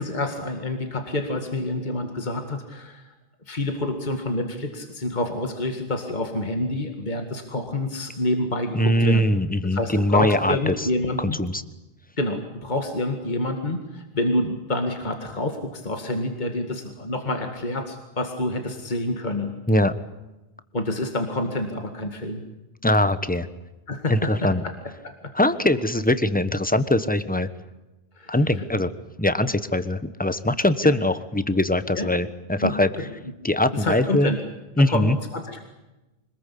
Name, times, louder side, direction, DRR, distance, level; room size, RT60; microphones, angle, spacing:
voice 1, 0.0-3.1 3.5-9.3 9.7-11.4 12.2-19.5 20.7-22.4 23.9-24.7 25.0-25.3 28.2-28.7 30.8-31.0 32.0-32.1 32.6-33.1 33.7-34.4 34.8-35.6, left 1 dB, 45° left, 5 dB, 2.3 m, -28 dB
voice 2, 8.7-10.9 11.2-11.6 19.7-19.9 22.8-23.5 24.1-24.6 25.3-27.5 28.3-28.9 29.2-33.1 33.4-34.3 34.8-35.2, left 1 dB, 10° left, 12 dB, 1.2 m, -22 dB
26.0 x 20.5 x 8.5 m, 1.0 s
omnidirectional pair, 1.0 m